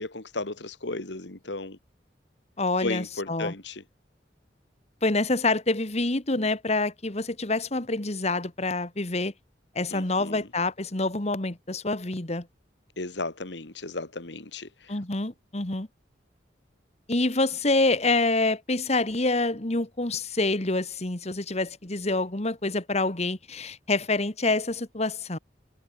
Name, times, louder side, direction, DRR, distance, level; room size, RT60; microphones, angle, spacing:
voice 1, 0.0-1.8 2.8-3.8 9.9-10.5 13.0-14.7, left 2 dB, 75° left, 2.1 m, -34 dB
voice 2, 2.6-3.5 5.0-9.3 9.8-12.5 14.9-15.9 17.1-25.4, left 2 dB, 35° left, 1.8 m, -27 dB
head